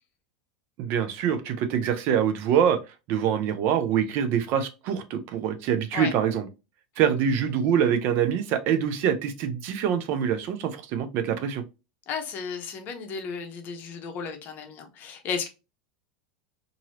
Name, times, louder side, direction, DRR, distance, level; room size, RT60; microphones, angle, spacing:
voice 1, 0.8-2.8 3.1-6.5 7.0-11.6, right 8 dB, 55° right, 0.6 m, -25 dB
voice 2, 12.1-15.5, left 6 dB, 45° left, 0.8 m, -34 dB
2.9 x 2.7 x 2.8 m
hypercardioid pair, 110°, 5 cm